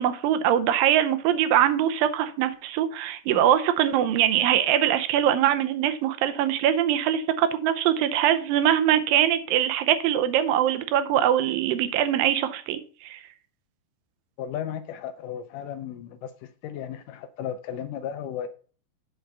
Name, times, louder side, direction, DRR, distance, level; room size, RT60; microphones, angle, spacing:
voice 1, 0.0-13.2, right 10 dB, 80° right, 2.4 m, -22 dB
voice 2, 14.4-16.3 16.6-18.5, left 9 dB, 80° left, 2.0 m, -34 dB
8.0 x 4.7 x 6.7 m
omnidirectional pair, 4.1 m